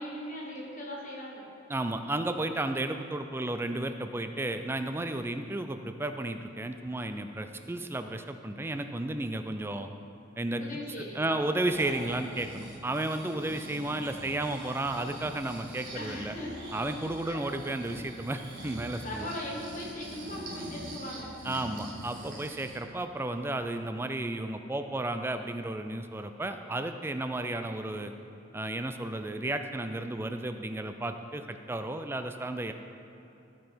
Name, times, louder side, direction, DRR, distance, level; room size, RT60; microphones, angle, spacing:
voice 1, 0.0-1.5 10.6-11.4 15.9-16.5 17.2-17.4 19.0-21.3, left 1 dB, 40° left, -4 dB, 1.4 m, -39 dB
voice 2, 1.7-9.9 10.4-10.7 11.0-16.3 16.7-19.3 21.4-28.1 28.5-32.7, right 2 dB, 10° right, 8 dB, 0.4 m, -33 dB
Breathing, 11.4-22.8 23.3-23.4, right 1 dB, 75° right, 1.7 m, -44 dB
15.0 x 5.3 x 4.5 m, 2.9 s
head